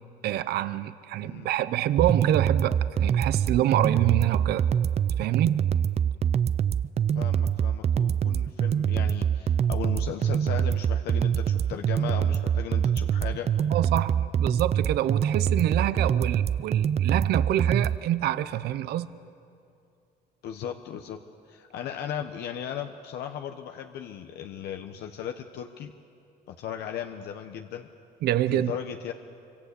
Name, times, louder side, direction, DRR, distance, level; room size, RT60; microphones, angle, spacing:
voice 1, 0.2-4.7 5.2-5.7 13.7-19.1 28.2-28.7, right 13 dB, 70° right, 14 dB, 0.9 m, -26 dB
sound 1, 2.0-18.0, right 8 dB, 40° right, 0.6 m, -25 dB
voice 2, 7.1-13.5 20.4-21.2 21.5-25.9 26.5-27.9 28.5-29.1, left 9 dB, 75° left, 6 dB, 1.2 m, -36 dB
26.0 x 25.0 x 8.4 m, 2.5 s
cardioid pair, 110°, 17 cm